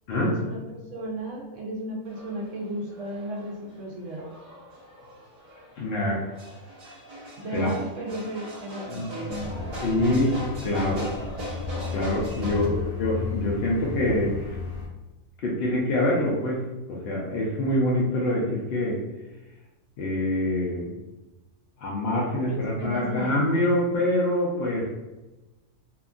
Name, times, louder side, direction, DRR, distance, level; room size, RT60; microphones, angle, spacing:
voice 1, 0.1-4.3 7.4-9.8 12.4-12.8 22.4-23.4, right 1 dB, 70° right, -1 dB, 0.9 m, -35 dB
sound 1, 2.1-12.7, equal, 50° right, 1.1 m, -40 dB
voice 2, 5.8-6.2 7.5-7.7 8.9-9.5 9.8-10.4 10.6-11.0 11.9-14.6 15.4-16.6 16.9-19.0 20.0-20.9 21.8-24.9, left 1 dB, 60° left, -4 dB, 0.7 m, -25 dB
sound 2, 9.3-14.9, left 4 dB, 85° left, 1.0 m, -34 dB
2.8 x 2.5 x 2.4 m, 1.1 s
omnidirectional pair, 1.4 m